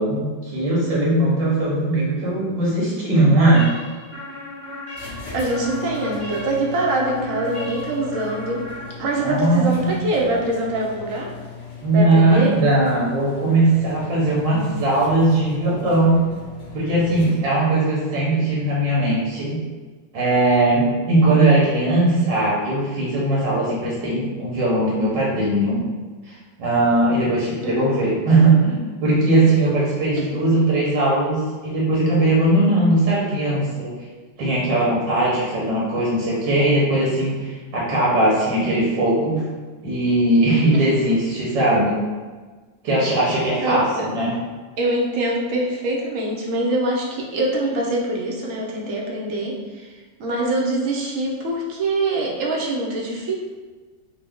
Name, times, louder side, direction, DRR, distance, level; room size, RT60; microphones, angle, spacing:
voice 1, 0.0-3.7 9.2-9.9 11.8-16.2 16.7-19.6 20.1-25.8 26.3-26.4 26.6-33.9 34.4-39.4 39.8-41.9 42.8-44.4, right 2 dB, 80° right, -6 dB, 1.6 m, -19 dB
sound 1, 3.5-9.4, left 1 dB, 15° right, 0.5 m, -34 dB
sound 2, 4.9-17.7, left 4 dB, 65° left, 2.0 m, -38 dB
voice 2, 5.3-8.6 9.0-11.3 11.9-12.5 27.6-28.0 40.7-40.8 43.6-44.1 44.8-53.4, right 1 dB, 60° right, -2 dB, 0.9 m, -24 dB
4.5 x 2.2 x 3.5 m, 1.3 s
omnidirectional pair, 1.9 m